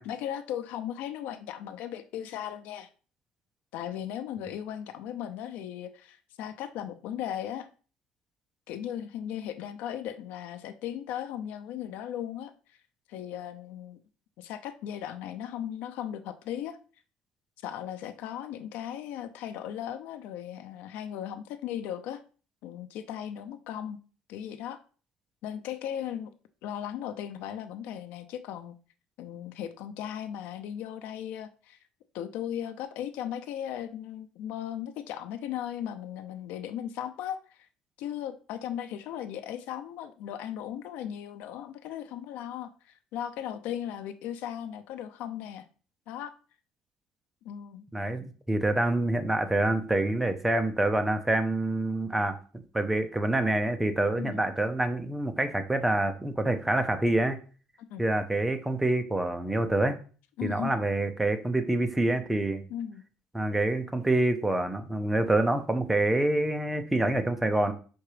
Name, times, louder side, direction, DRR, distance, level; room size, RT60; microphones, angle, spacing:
voice 1, 0.0-2.9 3.7-7.7 8.7-12.8 13.1-14.0 14.4-16.8 17.6-22.2 22.6-24.0 24.3-24.8 25.4-26.3 26.6-28.8 29.2-31.8 32.1-37.6 38.0-45.7 46.1-46.3 47.4-47.8 54.2-54.4 57.8-58.0 60.4-60.8 62.7-63.0, left 10 dB, 80° left, 11 dB, 0.7 m, -37 dB
voice 2, 47.9-52.4 52.7-57.4 58.0-60.0 60.4-62.6 63.3-67.7, right 2 dB, 5° right, 8 dB, 0.7 m, -26 dB
5.8 x 4.4 x 5.0 m, 0.38 s
cardioid pair, 145°, 3 cm